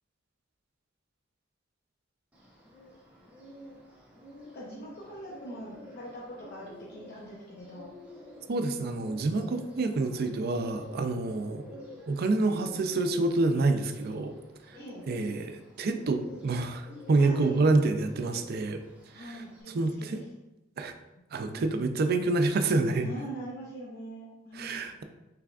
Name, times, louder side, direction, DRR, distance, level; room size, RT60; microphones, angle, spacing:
Bird, 2.3-19.6, left 1 dB, 10° right, 0.8 m, -50 dB
voice 1, 4.4-7.9 14.7-15.1 17.1-17.7 19.1-20.2 21.5-21.7 23.0-24.8, right 1 dB, 55° left, -4 dB, 0.7 m, -42 dB
voice 2, 8.5-11.6 12.1-14.3 14.7-14.8 15.1-18.8 19.2-19.4 19.7-20.2 20.8-20.9 21.3-23.1 24.5-25.0, right 3 dB, 50° right, 7 dB, 0.4 m, -27 dB
5.8 x 3.3 x 2.4 m, 0.98 s
head